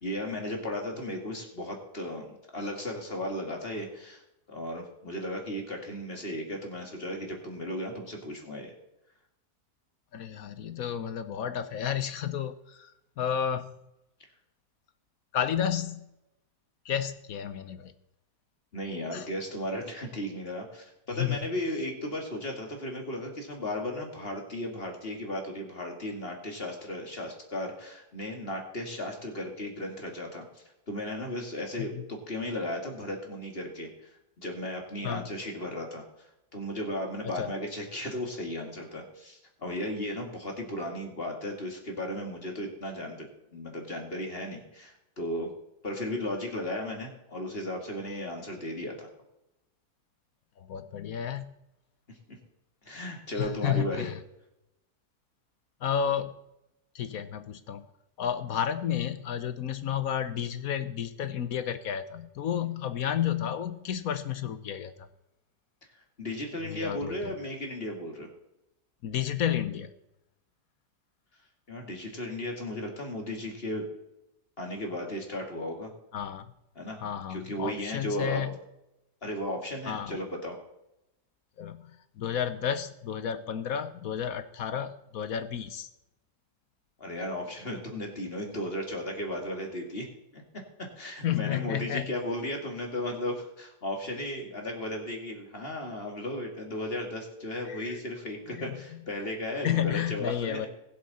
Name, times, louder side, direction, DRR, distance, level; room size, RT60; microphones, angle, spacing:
voice 1, 0.0-4.2 4.5-8.7 18.7-36.0 36.5-45.5 45.8-49.1 52.1-52.2 52.8-54.1 66.2-68.3 71.7-73.9 74.6-75.9 76.8-77.0 77.3-78.4 79.2-80.6 87.0-90.4 90.8-100.7, left 1 dB, 35° left, 1 dB, 2.5 m, -35 dB
voice 2, 10.1-12.9 13.2-13.8 15.3-16.0 16.8-17.9 19.1-19.3 21.2-21.4 31.8-32.0 35.0-35.3 37.2-37.5 50.6-51.5 53.4-54.1 55.8-56.3 56.9-57.8 58.2-65.1 66.7-67.3 69.0-69.9 76.1-76.5 77.0-78.5 79.9-80.2 81.6-81.9 82.2-85.9 91.2-92.1 97.7-98.0 98.5-98.6 99.6-100.7, left 9 dB, 65° left, 11 dB, 1.2 m, -31 dB
21.0 x 7.6 x 4.2 m, 0.88 s
omnidirectional pair, 1.7 m